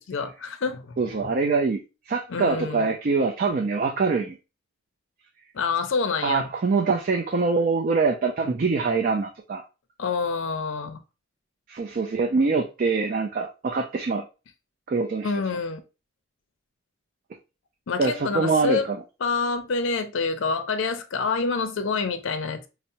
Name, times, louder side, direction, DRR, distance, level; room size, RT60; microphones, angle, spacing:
voice 1, 0.0-1.3 2.3-2.9 5.5-6.5 10.0-11.0 15.2-15.8 17.9-18.9 19.2-22.7, left 4 dB, 65° left, 0.5 m, -27 dB
voice 2, 1.0-1.8 2.1-4.4 6.2-9.6 11.7-14.3 14.9-15.3 18.0-19.0, right 4 dB, 45° right, 0.4 m, -24 dB
5.5 x 2.0 x 2.6 m
head